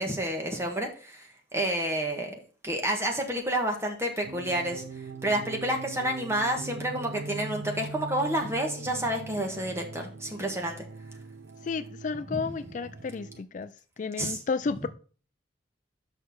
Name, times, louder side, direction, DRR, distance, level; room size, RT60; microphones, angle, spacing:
voice 1, 0.0-2.3 2.6-4.8 5.2-10.8 12.3-12.4 14.2-14.4, right 1 dB, 15° right, 1.5 m, -29 dB
sound 1, 4.2-13.4, right 3 dB, 75° right, 0.5 m, -41 dB
voice 2, 11.6-13.7 14.0-14.9, left 4 dB, 40° left, 0.3 m, -32 dB
6.5 x 5.8 x 6.0 m
head